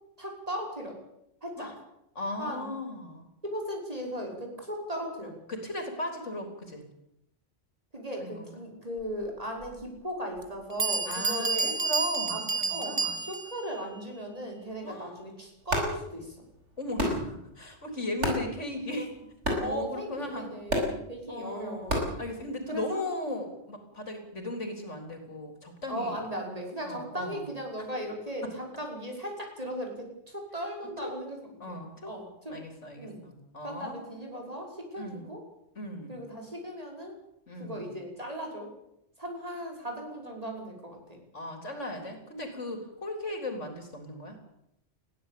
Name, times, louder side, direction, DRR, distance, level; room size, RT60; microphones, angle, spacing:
voice 1, 0.2-1.0 1.4-1.7 2.4-2.7 3.4-5.4 7.9-11.7 12.3-16.4 19.5-22.1 22.7-23.0 25.9-31.4 31.7-31.8 32.0-32.5 33.0-33.2 33.6-35.4 36.1-37.2 37.6-38.7 39.2-41.2, equal, 30° right, 1 dB, 5.8 m, -37 dB
voice 2, 2.1-3.3 5.5-6.9 8.2-8.4 11.1-13.1 14.8-15.1 16.8-19.1 19.6-20.5 21.3-26.2 26.8-27.4 31.0-31.1 31.6-32.1 32.5-34.0 35.0-35.3 35.8-36.2 37.5-37.8 41.3-44.4, left 1 dB, 75° left, 5 dB, 4.3 m, -37 dB
Bell, 9.6-9.7 10.4-10.5 10.8-13.6, right 4 dB, 50° right, 2.0 m, -30 dB
sound 1, 15.6-22.9, equal, 70° right, 6.0 m, -34 dB
21.0 x 16.0 x 8.6 m, 0.79 s
omnidirectional pair, 1.3 m